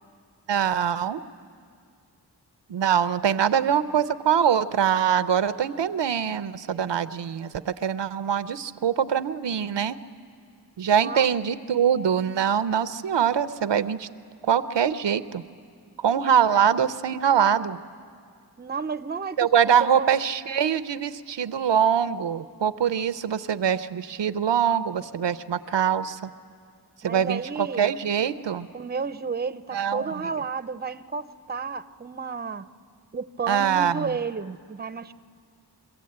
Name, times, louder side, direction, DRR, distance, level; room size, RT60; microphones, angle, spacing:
voice 1, 0.5-1.2 2.7-10.0 10.8-14.1 14.4-15.4 16.0-17.8 19.4-26.3 27.0-28.7 29.7-30.1 33.5-34.1, right 8 dB, 90° right, 14 dB, 0.6 m, -23 dB
voice 2, 10.9-11.3 16.5-16.6 18.6-19.4 19.7-20.1 27.0-27.9 28.7-32.7 33.1-35.1, right 5 dB, 25° right, 13 dB, 0.5 m, -32 dB
23.5 x 15.5 x 8.6 m, 2.2 s
wide cardioid pair, 45°, 42 cm